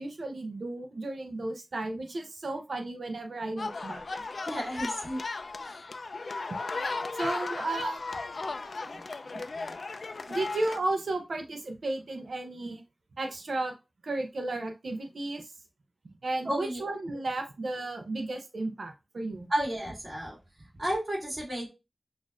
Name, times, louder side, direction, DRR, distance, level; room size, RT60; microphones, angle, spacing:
voice 1, 0.0-4.0 7.1-9.0 9.3-9.4 10.3-12.8 13.2-13.7 14.0-15.5 16.0-19.5, right 2 dB, 85° right, 4 dB, 0.6 m, -34 dB
sound 1, 3.6-10.8, left 3 dB, 80° left, 0.3 m, -36 dB
voice 2, 4.5-5.2 5.6-5.8 16.4-16.8 19.5-20.4 20.8-21.7, right 1 dB, 50° right, -4 dB, 2.5 m, -32 dB
6.0 x 2.5 x 2.4 m, 0.27 s
wide cardioid pair, 45°, 0 cm